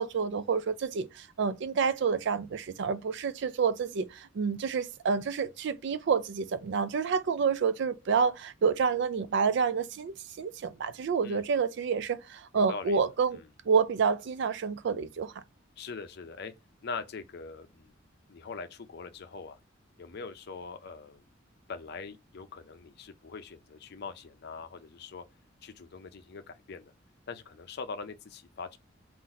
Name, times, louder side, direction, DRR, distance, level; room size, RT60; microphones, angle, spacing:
voice 1, 0.0-13.4 13.7-15.3, right 6 dB, 65° right, 0.4 m, -28 dB
voice 2, 12.5-13.0 13.4-13.5 15.8-16.5 16.8-17.9 18.3-19.6 20.0-21.2 21.7-25.2 25.6-26.9 27.3-28.8, left 4 dB, 60° left, 0.5 m, -42 dB
3.9 x 2.5 x 4.2 m
head